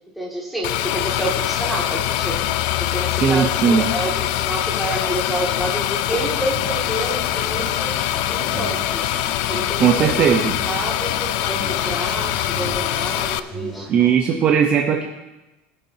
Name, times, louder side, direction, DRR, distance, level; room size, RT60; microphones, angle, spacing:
voice 1, 0.2-2.4 2.8-8.0 8.3-9.1 9.5-10.3 10.6-13.9, right 1 dB, ahead, -4 dB, 2.4 m, -29 dB
sound 1, 0.6-13.4, left 13 dB, 65° left, 0.5 m, -23 dB
voice 2, 3.2-3.9 9.8-10.5 13.9-15.1, right 7 dB, 30° right, 1 dB, 0.9 m, -17 dB
sound 2, 6.1-14.1, right 1 dB, 20° left, 2.3 m, -37 dB
21.0 x 7.6 x 2.9 m, 1.0 s
cardioid pair, 160°, 4 cm